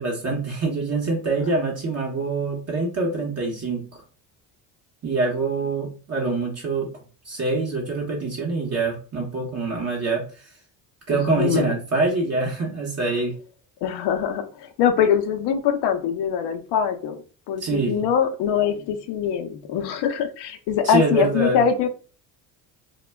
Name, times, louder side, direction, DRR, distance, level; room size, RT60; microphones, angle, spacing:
voice 1, 0.0-3.8 5.0-6.9 7.2-10.5 11.1-13.3 17.6-18.0 20.8-21.6, right 3 dB, 30° right, -1 dB, 0.8 m, -25 dB
voice 2, 11.1-11.7 13.8-17.2 17.5-21.9, left 8 dB, 55° left, 7 dB, 0.6 m, -23 dB
2.2 x 2.1 x 3.3 m, 0.38 s
hypercardioid pair, 70°, 48 cm